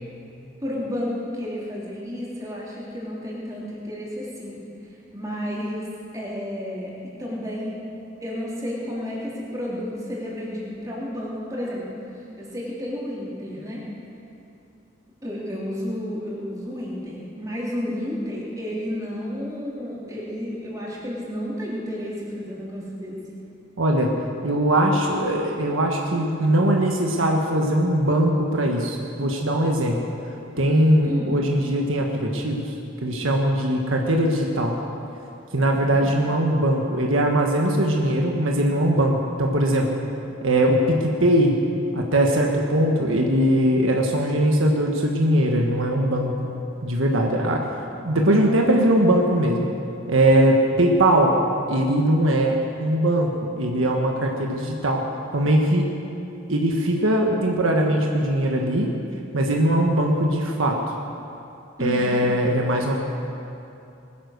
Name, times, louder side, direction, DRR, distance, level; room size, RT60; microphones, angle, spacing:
voice 1, 0.6-5.9 6.1-7.8 8.2-11.9 12.4-13.8 15.2-23.2 31.0-31.3 35.7-36.1 61.8-62.2, equal, 15° right, -6 dB, 3.4 m, -31 dB
voice 2, 23.8-24.1 24.4-30.0 30.6-32.7 33.0-34.7 35.5-40.0 40.4-41.6 41.9-46.4 46.8-47.6 48.0-49.7 50.1-51.4 51.7-53.3 53.6-55.0 55.3-55.9 56.5-58.9 59.3-60.8 61.8-63.0, right 1 dB, 85° right, 1 dB, 1.4 m, -20 dB
20.5 x 10.0 x 6.6 m, 2.7 s
head